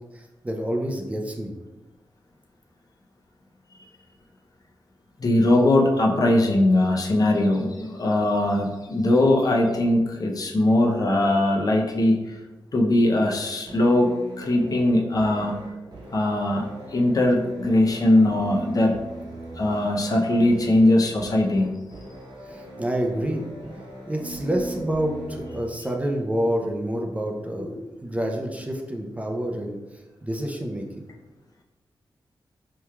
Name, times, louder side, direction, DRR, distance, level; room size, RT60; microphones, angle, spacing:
voice 1, 0.1-1.5 22.5-23.5 24.1-27.7 28.0-29.8 30.2-31.0, right 1 dB, 15° right, 1 dB, 0.5 m, -28 dB
voice 2, 5.2-12.4 12.7-15.6 16.1-16.6 16.9-19.0 19.6-21.7, left 1 dB, 45° left, -1 dB, 0.6 m, -20 dB
sound 1, 13.7-25.7, right 1 dB, 55° right, 0.9 m, -40 dB
4.7 x 3.0 x 2.3 m, 1.1 s
wide cardioid pair, 100°, 9 cm